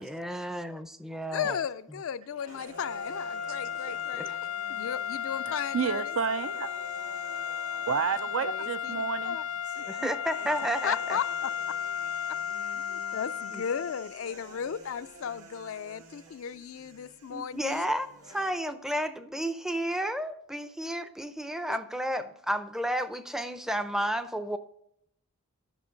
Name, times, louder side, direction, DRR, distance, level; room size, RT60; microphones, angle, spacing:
voice 1, 0.0-1.5 4.2-4.3 9.9-11.0 17.3-24.6, equal, ahead, 0.5 m, -32 dB
voice 2, 1.3-4.3 4.7-6.2 8.4-9.5 10.8-11.5 12.7-18.0 21.7-21.8, left 7 dB, 60° left, 0.4 m, -35 dB
sound 1, 2.5-18.5, right 2 dB, 80° right, 2.1 m, -51 dB
sound 2, 2.7-14.2, left 8 dB, 80° left, 0.8 m, -34 dB
voice 3, 5.7-6.8 7.9-9.4 10.0-10.1, right 6 dB, 60° right, 0.4 m, -30 dB
11.0 x 6.1 x 5.1 m
head